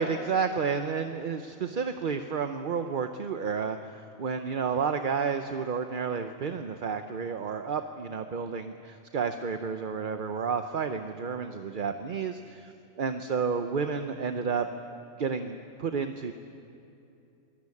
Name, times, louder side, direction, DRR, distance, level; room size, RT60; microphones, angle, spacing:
voice 1, 0.0-12.7 13.0-14.7 15.2-16.3, right 6 dB, 45° right, 7 dB, 0.8 m, -31 dB
23.5 x 18.5 x 8.5 m, 2.7 s
omnidirectional pair, 1.4 m